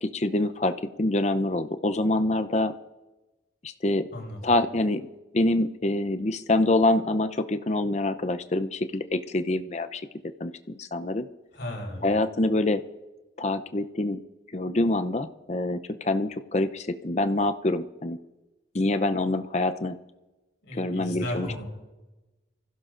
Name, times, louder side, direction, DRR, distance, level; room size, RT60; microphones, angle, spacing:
voice 1, 0.0-2.7 3.6-4.1 4.4-5.0 5.3-10.0 10.4-11.2 12.0-12.8 13.4-14.2 14.5-18.2 18.7-19.9 20.7-21.6, left 2 dB, 35° left, 10 dB, 0.6 m, -26 dB
voice 2, 4.1-4.5 11.5-12.1 20.6-21.7, left 1 dB, 70° left, 1 dB, 4.6 m, -35 dB
25.0 x 16.0 x 2.5 m, 1.1 s
head